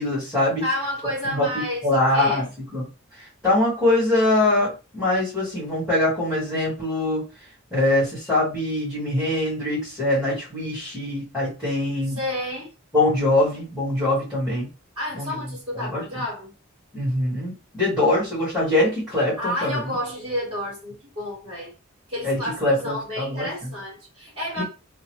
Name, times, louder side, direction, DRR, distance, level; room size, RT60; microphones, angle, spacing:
voice 1, 0.0-0.6 1.2-2.4 2.7-2.8 3.1-7.2 7.7-12.2 12.9-14.7 15.1-15.4 15.7-16.2 16.9-19.8 22.2-23.7 24.6-24.7, left 1 dB, ahead, -11 dB, 1.4 m, -23 dB
voice 2, 0.6-2.5 12.1-12.7 14.9-16.5 19.4-21.7 22.1-24.6, left 1 dB, 25° right, -8 dB, 1.6 m, -30 dB
2.9 x 2.1 x 2.9 m, 0.32 s
head